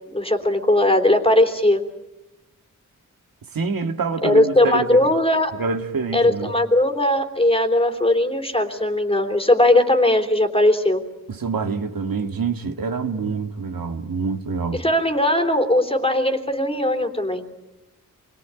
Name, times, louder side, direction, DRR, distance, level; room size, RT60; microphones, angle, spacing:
voice 1, 0.1-1.8 4.2-5.5 6.1-11.0 14.7-17.4, left 1 dB, 15° left, 3.4 m, -19 dB
voice 2, 3.5-5.0 5.5-6.5 11.3-14.8, right 5 dB, 85° right, 2.2 m, -26 dB
28.0 x 23.0 x 9.0 m
wide cardioid pair, 115°, 34 cm